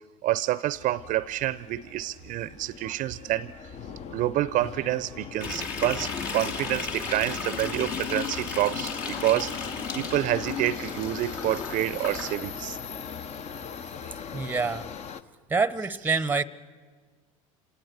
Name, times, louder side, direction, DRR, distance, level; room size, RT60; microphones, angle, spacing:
voice 1, 0.2-3.5 4.1-9.5 9.9-12.8, right 14 dB, 50° right, 18 dB, 0.6 m, -28 dB
Subway metro underground, 0.7-15.2, left 7 dB, 40° left, 0.9 m, -40 dB
sound 1, 5.4-12.4, left 5 dB, 55° left, 2.9 m, -34 dB
voice 2, 14.3-14.9 15.5-16.4, right 4 dB, 10° right, 18 dB, 0.8 m, -26 dB
26.5 x 18.0 x 8.1 m, 1.5 s
hypercardioid pair, 75°, 17 cm